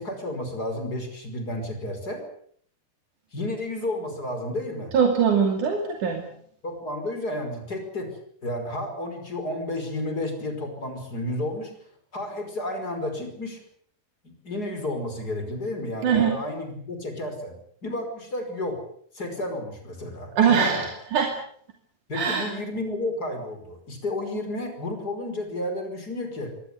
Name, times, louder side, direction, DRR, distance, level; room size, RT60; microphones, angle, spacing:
voice 1, 0.0-2.2 3.3-4.9 6.6-11.7 12.1-13.6 14.2-17.6 17.8-18.8 19.1-20.8 22.1-26.5, left 1 dB, 30° left, 6 dB, 5.8 m, -31 dB
voice 2, 4.9-6.2 16.0-16.4 20.4-21.3 22.1-22.5, right 7 dB, 80° right, 3 dB, 4.1 m, -22 dB
24.0 x 18.5 x 8.2 m, 0.62 s
omnidirectional pair, 3.5 m